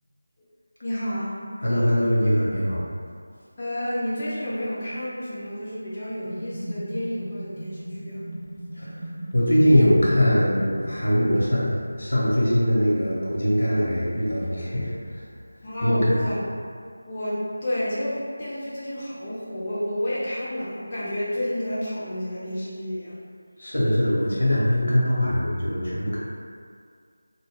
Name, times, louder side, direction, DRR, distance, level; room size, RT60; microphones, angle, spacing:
voice 1, 0.8-1.4 3.6-8.2 15.6-16.4 17.0-23.2, equal, 30° left, -10 dB, 0.4 m, -30 dB
voice 2, 1.6-2.8 8.7-15.3 15.8-16.3 23.6-26.2, equal, 70° left, -6 dB, 0.8 m, -22 dB
sound 1, 6.3-11.6, right 1 dB, 60° right, 0.4 m, -36 dB
2.2 x 2.1 x 3.5 m, 2.2 s
figure-of-eight pair, 165°, 0 cm